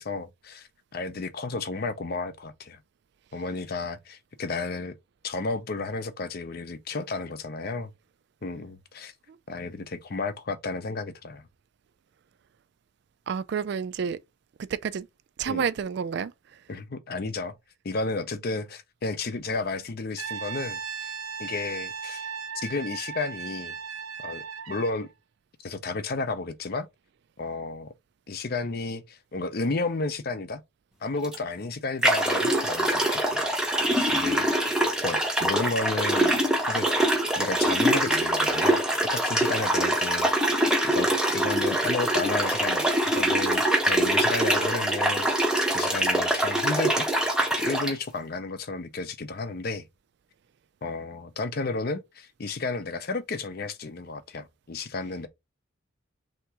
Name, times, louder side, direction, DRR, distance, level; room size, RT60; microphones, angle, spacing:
voice 1, 0.0-2.8 3.3-4.9 5.2-7.9 8.4-9.1 9.5-11.4 15.5-15.7 16.7-17.5 17.8-21.1 21.4-22.3 22.5-23.7 24.2-25.1 25.6-26.9 27.4-27.9 28.3-30.6 31.0-33.5 34.1-34.5 35.0-36.4 36.7-36.9 37.4-42.9 43.1-47.1 47.5-49.9 50.8-55.3, left 3 dB, 45° left, 0.5 m, -32 dB
voice 2, 13.3-14.2 14.7-15.1 15.4-16.3, right 6 dB, 55° right, 0.3 m, -29 dB
Brass instrument, 20.2-25.0, right 6 dB, 90° right, 0.7 m, -36 dB
sound 1, 31.2-31.4 32.0-47.9, right 1 dB, 5° right, 0.7 m, -24 dB
3.5 x 2.9 x 4.3 m
head